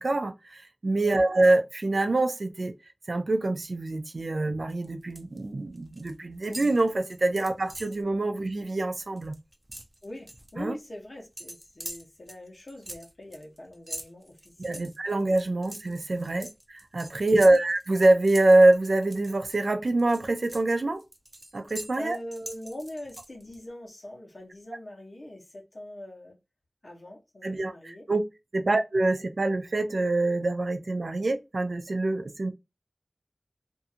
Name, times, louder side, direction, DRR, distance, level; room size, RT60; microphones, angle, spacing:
voice 1, 0.0-2.7 3.1-9.3 10.6-10.8 14.6-21.0 21.5-22.2 27.4-28.2 28.5-32.5, right 2 dB, 85° right, 0.4 m, -25 dB
sound 1, 4.7-5.4 5.7-6.1 6.4-8.0 8.4-8.6 8.9-10.5 11.4-19.6 20.0-23.6, right 1 dB, 25° right, 0.5 m, -44 dB
voice 2, 10.0-14.9 16.2-16.5 17.2-17.7 22.0-26.4 26.8-28.1 28.7-28.8, left 1 dB, 75° left, 1.0 m, -42 dB
2.6 x 2.4 x 2.7 m
wide cardioid pair, 55°, 0 cm